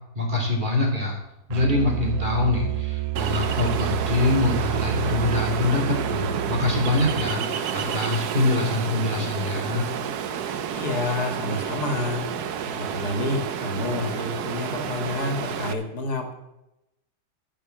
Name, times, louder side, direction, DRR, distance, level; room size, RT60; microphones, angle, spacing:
voice 1, 0.1-1.2 1.5-9.8, left 2 dB, 30° right, -1 dB, 2.8 m, -24 dB
Musical instrument, 1.5-7.2, right 14 dB, 70° right, 1.1 m, -30 dB
Ocean, 3.2-15.7, right 8 dB, 85° right, 1.3 m, -30 dB
voice 2, 10.7-12.2 12.8-16.3, left 2 dB, 80° left, 4 dB, 2.2 m, -28 dB
14.5 x 5.7 x 7.5 m, 0.91 s
omnidirectional pair, 1.6 m